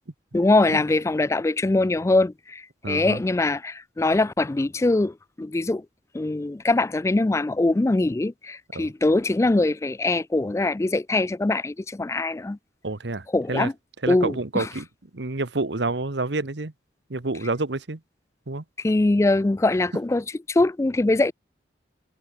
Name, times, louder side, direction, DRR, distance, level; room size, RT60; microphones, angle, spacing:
voice 1, 0.3-5.8 6.1-12.6 13.3-13.7 14.1-14.7 18.8-21.3, left 2 dB, 15° left, 0.3 m, -22 dB
voice 2, 2.8-3.2 8.7-8.9 12.8-13.7 14.0-14.9 15.1-16.7 17.1-18.0 18.5-18.6, right 2 dB, 70° right, 1.3 m, -28 dB
head